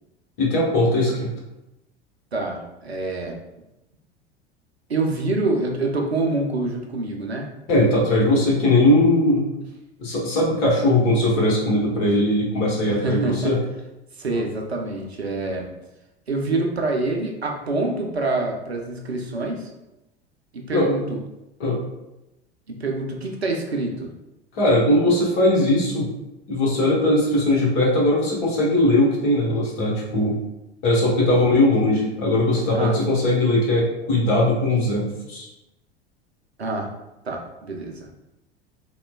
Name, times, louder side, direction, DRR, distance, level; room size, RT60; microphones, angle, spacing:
voice 1, 0.4-1.3 7.7-9.5 10.0-13.6 20.7-20.9 21.6-21.8 24.5-26.1 26.5-30.4 30.8-35.5, left 1 dB, 50° left, -5 dB, 1.1 m, -19 dB
voice 2, 2.3-3.4 4.9-7.5 12.9-13.6 14.2-15.7 16.3-19.7 20.5-21.2 22.7-24.1 32.7-32.9 36.6-36.9 37.2-38.0, right 2 dB, 85° right, 1 dB, 0.5 m, -26 dB
3.0 x 2.1 x 2.2 m, 0.94 s
figure-of-eight pair, 80°, 31 cm